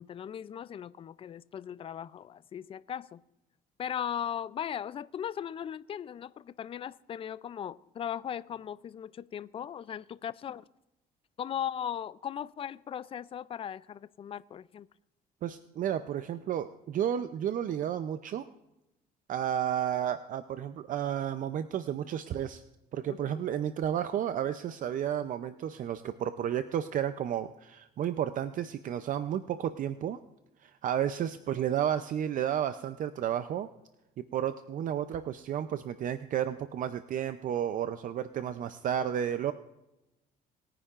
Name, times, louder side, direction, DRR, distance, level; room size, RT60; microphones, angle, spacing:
voice 1, 0.0-3.2 3.8-10.6 11.4-14.9 23.1-23.4, left 9 dB, 35° left, 0.4 m, -38 dB
voice 2, 15.4-18.4 19.3-22.6 22.9-30.2 30.6-33.7 34.2-39.5, right 10 dB, 50° right, 0.5 m, -32 dB
20.5 x 9.9 x 2.5 m
cardioid pair, 110°, 17 cm